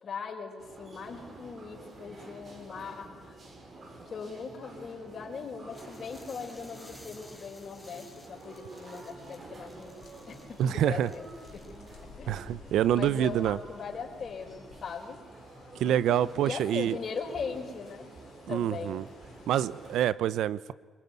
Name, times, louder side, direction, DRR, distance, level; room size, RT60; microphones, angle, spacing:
voice 1, 0.0-3.4 4.0-11.3 11.5-11.6 12.2-12.4 12.9-15.2 15.8-18.1 18.5-19.0, left 5 dB, 50° left, 2 dB, 5.1 m, -40 dB
sound 1, 0.6-20.0, right 2 dB, 45° right, 5.6 m, -49 dB
sound 2, 5.7-20.0, left 5 dB, 75° left, 3.1 m, -56 dB
sound 3, 5.7-12.2, left 1 dB, ahead, 3.8 m, -56 dB
voice 2, 10.6-11.1 12.3-13.6 15.8-17.0 18.5-19.0 19.5-20.7, right 11 dB, 80° right, 19 dB, 0.7 m, -26 dB
24.5 x 22.5 x 9.5 m, 1.5 s
cardioid pair, 90°, 0 cm